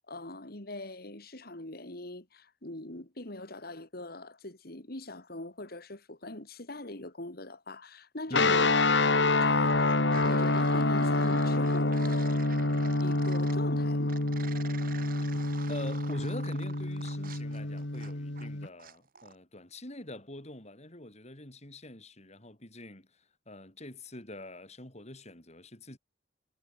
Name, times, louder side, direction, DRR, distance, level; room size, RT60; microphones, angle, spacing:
voice 1, 0.0-8.7 9.0-9.9 10.2-12.4 13.0-14.2, left 2 dB, 55° left, 3.3 m, -42 dB
sound 1, 8.3-18.7, left 2 dB, 70° left, 2.5 m, -27 dB
voice 2, 8.3-8.6 15.7-26.0, left 1 dB, 35° left, 7.1 m, -44 dB
sound 2, 8.8-9.4 9.6-13.6 14.1-18.5 18.8-19.4, right 6 dB, 50° right, 7.4 m, -48 dB
head